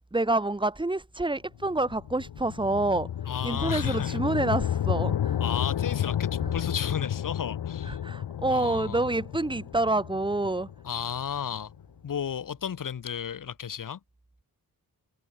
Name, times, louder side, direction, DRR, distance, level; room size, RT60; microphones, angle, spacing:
voice 1, 0.1-3.1 3.4-5.4 7.9-10.7, right 2 dB, 10° right, 3.8 m, -27 dB
sound 1, 1.6-11.8, left 10 dB, 80° left, 6.7 m, -31 dB
voice 2, 3.3-4.2 5.4-8.0 8.5-9.1 10.8-11.7 12.0-14.0, left 8 dB, 55° left, 4.1 m, -33 dB
wide cardioid pair, 145°, 38 cm